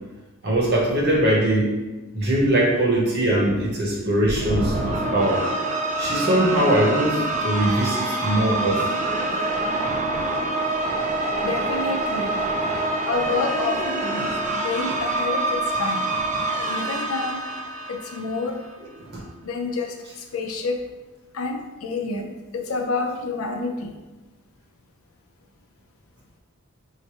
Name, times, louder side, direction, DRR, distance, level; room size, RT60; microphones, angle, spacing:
voice 1, 0.4-1.7 2.1-5.4 6.0-8.9 9.3-9.4 19.1-19.2, right 1 dB, 50° right, -3 dB, 0.8 m, -21 dB
sound 1, 4.2-18.6, right 2 dB, 35° right, 0.4 m, -26 dB
voice 2, 11.4-12.3 13.1-16.0 16.7-17.4 17.9-18.6 19.4-20.8 21.3-23.9, left 4 dB, 75° left, 3 dB, 0.5 m, -29 dB
4.7 x 2.1 x 2.9 m, 1.1 s
head